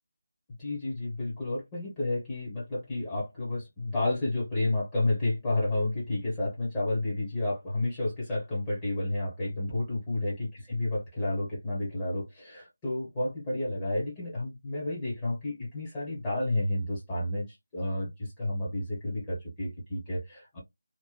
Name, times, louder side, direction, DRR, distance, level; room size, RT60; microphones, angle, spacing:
voice 1, 0.6-20.6, left 2 dB, 15° left, 1.2 m, -31 dB
2.9 x 2.1 x 2.2 m
figure-of-eight pair, 160°, 0 cm